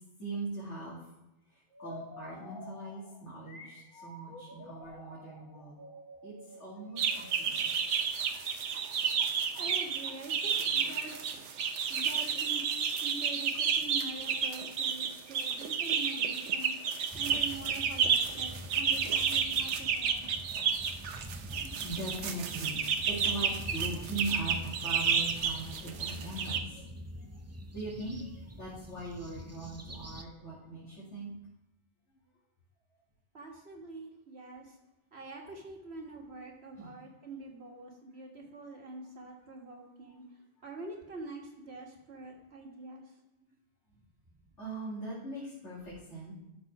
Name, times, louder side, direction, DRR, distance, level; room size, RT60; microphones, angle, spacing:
voice 1, 0.2-1.0 1.5-5.8 6.2-7.7 8.3-8.7 10.7-10.8 20.6-20.7 21.4-27.3 27.7-31.3 36.8-36.9 44.6-46.3, right 2 dB, 85° left, -9 dB, 2.7 m, -41 dB
sound 1, 1.7-8.4, left 1 dB, 50° left, 1.3 m, -50 dB
sound 2, 7.0-26.6, right 6 dB, 85° right, 1.1 m, -31 dB
voice 2, 9.6-11.5 11.9-12.7 13.0-16.7 17.1-20.3 33.3-34.8 35.1-40.2 40.6-43.0, right 3 dB, 65° right, 0 dB, 1.9 m, -45 dB
sound 3, 17.1-30.2, equal, 25° right, 0.3 m, -46 dB
12.5 x 4.3 x 5.8 m, 0.90 s
omnidirectional pair, 1.2 m